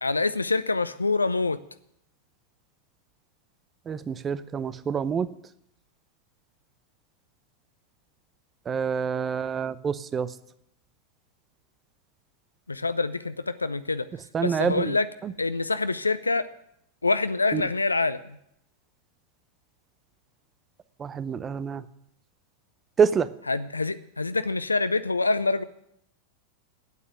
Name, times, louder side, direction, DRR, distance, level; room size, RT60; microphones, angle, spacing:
voice 1, 0.0-1.6 12.7-14.1 14.4-15.1 15.4-16.5 17.0-18.4 23.5-25.6, left 3 dB, 80° left, 14 dB, 0.4 m, -26 dB
voice 2, 3.9-5.3 8.7-10.3 14.3-14.9 17.5-17.6 21.0-21.8 23.0-23.3, right 6 dB, 20° right, 15 dB, 0.6 m, -26 dB
9.2 x 8.3 x 9.5 m, 0.77 s
figure-of-eight pair, 90°, 0 cm